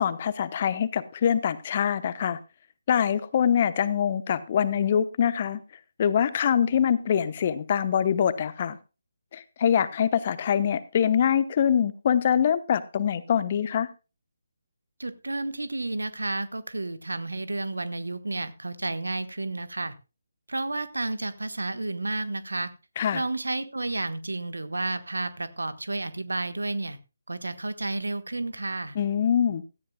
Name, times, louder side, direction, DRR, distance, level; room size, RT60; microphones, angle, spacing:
voice 1, 0.0-2.4 2.9-5.6 6.0-8.8 9.3-13.9 23.0-23.2 28.9-29.6, left 8 dB, 30° left, 13 dB, 0.9 m, -24 dB
voice 2, 15.0-19.9 20.5-22.7 23.1-27.0 27.3-29.0, right 2 dB, 70° right, 12 dB, 1.3 m, -31 dB
17.0 x 13.5 x 2.3 m, 0.30 s
figure-of-eight pair, 150°, 0 cm